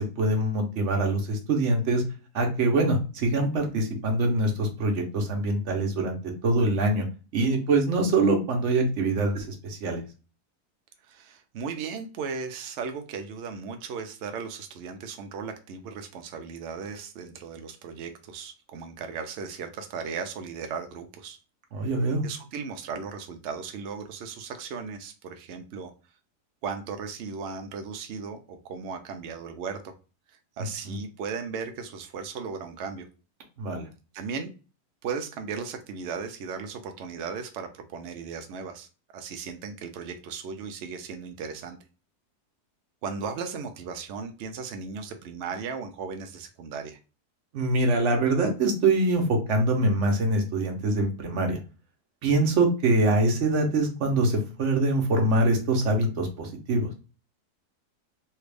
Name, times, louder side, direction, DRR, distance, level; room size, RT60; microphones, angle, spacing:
voice 1, 0.0-2.0 2.3-6.2 6.4-7.0 7.3-10.0 21.7-22.2 30.8-30.9 33.6-33.9 47.5-51.6 52.2-56.9, right 2 dB, 55° right, 3 dB, 1.0 m, -24 dB
voice 2, 11.0-21.4 21.8-21.9 22.2-25.9 26.6-29.9 30.3-33.1 34.1-34.5 35.0-38.9 39.1-41.8 43.0-47.0, right 5 dB, 85° right, 6 dB, 0.6 m, -36 dB
3.3 x 2.4 x 3.3 m, 0.34 s
omnidirectional pair, 1.7 m